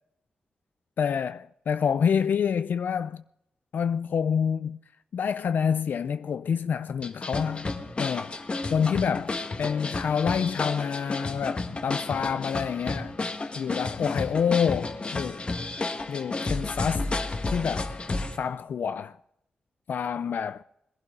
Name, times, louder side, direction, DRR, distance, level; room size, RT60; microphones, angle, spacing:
voice 1, 1.0-3.2 3.7-4.8 5.1-7.7 8.0-8.4 8.7-13.1 13.5-15.4 16.1-17.1 17.5-17.9 18.4-19.2 19.9-20.6, left 7 dB, 75° left, 0.4 m, -27 dB
sound 1, 7.0-18.4, left 3 dB, 35° left, 1.4 m, -32 dB
22.0 x 12.0 x 3.7 m
wide cardioid pair, 95°, 3 cm